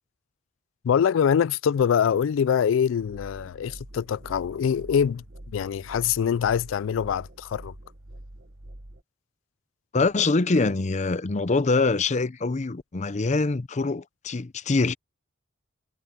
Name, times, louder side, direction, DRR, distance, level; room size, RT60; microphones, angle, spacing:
voice 1, 0.8-5.2 5.5-7.7, left 8 dB, 85° left, 0.3 m, -24 dB
sound 1, 3.0-9.0, right 1 dB, 60° right, 1.5 m, -45 dB
voice 2, 9.9-14.9, left 3 dB, 35° left, 0.6 m, -24 dB
head